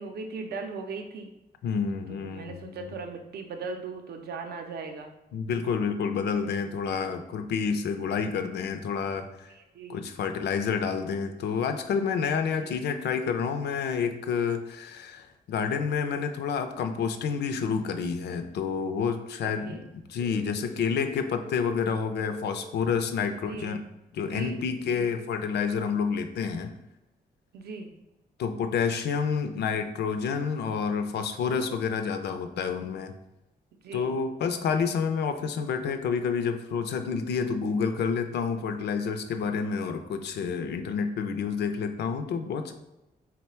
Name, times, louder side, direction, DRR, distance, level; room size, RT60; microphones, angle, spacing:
voice 1, 0.0-1.3 2.1-5.1 9.5-10.1 12.4-12.8 19.4-19.8 23.4-23.8 24.2-25.1 27.5-27.9 33.8-34.1, right 4 dB, 70° right, 4 dB, 0.5 m, -39 dB
voice 2, 1.6-2.9 5.3-9.5 9.9-19.8 20.1-23.8 24.1-26.7 28.4-33.2 33.9-42.7, left 6 dB, 90° left, 8 dB, 0.4 m, -29 dB
sound 1, 20.2-23.4, equal, ahead, 0.4 m, -43 dB
3.9 x 2.2 x 4.3 m, 0.97 s
wide cardioid pair, 145°, 17 cm